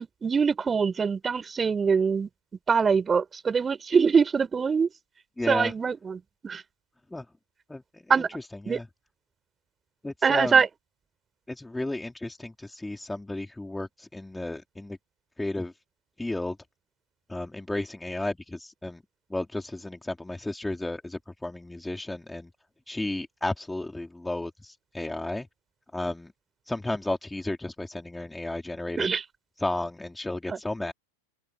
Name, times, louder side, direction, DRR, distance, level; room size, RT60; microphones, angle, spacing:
voice 1, 0.0-2.3 2.7-4.9 5.5-6.6 8.1-8.3 8.7-8.8 10.2-10.7 29.0-29.2 30.5-30.6, right 5 dB, 15° right, 5.4 m, -23 dB
voice 2, 5.4-5.7 7.1-7.3 7.7-8.9 10.0-10.6 11.5-15.0 15.4-15.7 16.2-16.6 17.3-19.0 19.3-22.5 22.9-25.5 25.9-26.3 26.7-29.1 29.6-30.9, left 2 dB, 5° left, 3.7 m, -33 dB
open air
figure-of-eight pair, 90°, 0 cm